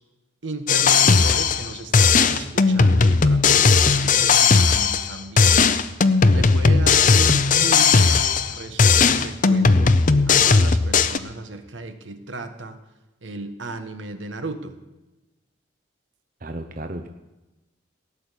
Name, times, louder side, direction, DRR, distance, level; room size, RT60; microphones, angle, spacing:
voice 1, 0.4-5.8 6.3-12.8 13.2-14.8, right 2 dB, 75° right, 8 dB, 1.5 m, -35 dB
sound 1, 0.7-1.7 1.9-5.1 5.4-8.5 8.8-11.2, left 5 dB, 40° left, 0.7 m, -17 dB
voice 2, 16.4-17.1, right 1 dB, 45° right, 6 dB, 0.9 m, -33 dB
17.5 x 7.1 x 10.0 m, 1.0 s
head